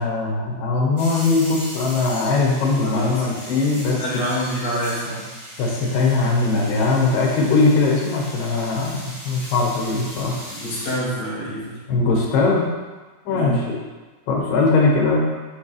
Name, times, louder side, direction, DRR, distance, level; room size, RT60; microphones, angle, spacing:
voice 1, 0.0-4.0 5.6-10.4 11.9-12.7 13.3-13.8 14.3-15.3, left 3 dB, 90° left, -2 dB, 3.1 m, -20 dB
sound 1, 1.0-11.0, equal, 10° right, 1.0 m, -38 dB
voice 2, 2.7-3.4 4.0-5.2 10.5-11.8 13.3-13.7, equal, 55° left, -8 dB, 3.5 m, -27 dB
11.5 x 4.8 x 3.4 m, 1.3 s
omnidirectional pair, 3.8 m